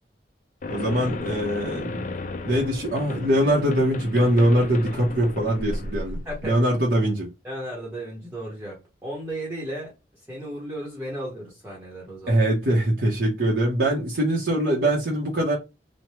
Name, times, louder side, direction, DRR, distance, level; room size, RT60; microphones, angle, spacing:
sound 1, 0.6-6.6, left 2 dB, 45° left, 0.4 m, -34 dB
voice 1, 0.7-2.1 2.4-7.3 12.3-15.6, right 1 dB, 70° right, 0.8 m, -22 dB
voice 2, 6.1-6.6 7.4-9.9 10.3-12.4, right 1 dB, 10° right, 0.9 m, -35 dB
3.2 x 2.2 x 2.8 m
head